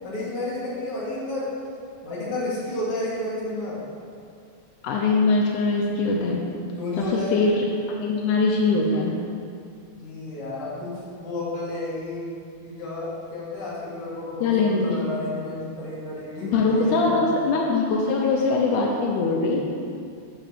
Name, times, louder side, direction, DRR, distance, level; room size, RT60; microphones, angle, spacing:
voice 1, 0.0-1.5 2.0-3.8 6.8-7.3 9.9-12.3 12.6-17.2 19.2-19.6, left 1 dB, 50° left, -8 dB, 2.5 m, -31 dB
voice 2, 4.8-6.4 7.1-7.6 8.0-9.1 14.4-15.0 16.4-19.7, left 3 dB, 85° left, -1 dB, 2.2 m, -22 dB
10.5 x 5.0 x 2.9 m, 2.4 s
omnidirectional pair, 3.5 m